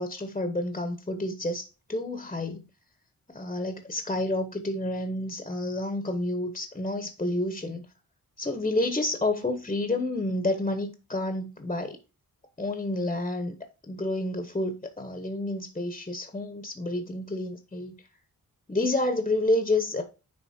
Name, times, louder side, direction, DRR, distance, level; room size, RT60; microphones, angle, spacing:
voice 1, 0.0-2.6 3.3-7.8 8.4-12.0 12.6-13.6 13.9-18.0 18.7-20.0, left 2 dB, 20° left, 1.0 m, -29 dB
10.0 x 4.0 x 4.3 m
wide cardioid pair, 140°, 35 cm